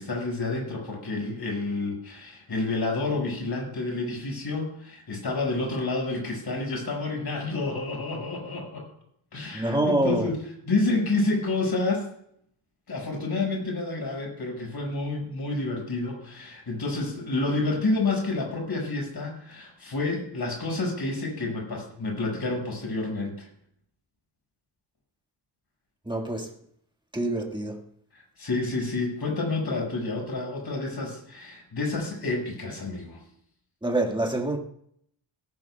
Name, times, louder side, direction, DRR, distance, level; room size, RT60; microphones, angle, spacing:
voice 1, 0.0-8.8 9.3-10.4 10.6-12.1 12.9-23.5 28.1-33.2, left 3 dB, 50° left, 5.7 m, -29 dB
voice 2, 9.5-10.3 26.1-26.5 27.1-27.8 33.8-34.6, right 2 dB, 10° right, 1.8 m, -26 dB
18.0 x 14.5 x 2.3 m
wide cardioid pair, 140°, 49 cm